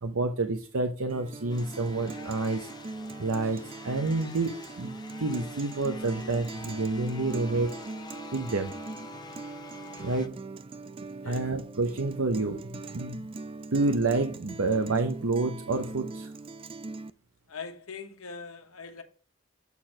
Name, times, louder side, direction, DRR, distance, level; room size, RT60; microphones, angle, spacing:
voice 1, 0.0-2.7 3.2-7.7 8.3-8.7 9.9-10.4 11.3-13.2 13.7-16.3, right 3 dB, 75° right, 0.8 m, -29 dB
Guitar, 1.1-17.1, right 3 dB, 25° right, 0.3 m, -41 dB
sound 1, 1.5-10.3, left 4 dB, 20° left, 0.6 m, -47 dB
voice 2, 17.5-19.0, left 5 dB, 80° left, 1.2 m, -41 dB
8.3 x 4.4 x 4.8 m
head